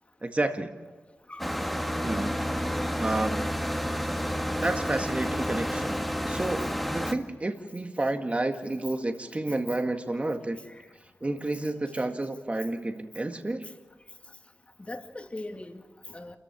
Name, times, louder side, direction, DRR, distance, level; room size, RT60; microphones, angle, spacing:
voice 1, 0.2-0.8 2.0-2.7 3.0-3.5 4.6-6.0 6.3-10.6 11.2-13.7, right 2 dB, 30° right, 5 dB, 1.7 m, -30 dB
sound 1, 1.4-7.1, equal, ahead, 1.8 m, -30 dB
voice 2, 14.9-16.4, left 2 dB, 30° left, 5 dB, 2.3 m, -40 dB
28.0 x 14.5 x 7.2 m, 1.2 s
cardioid pair, 50°, 4 cm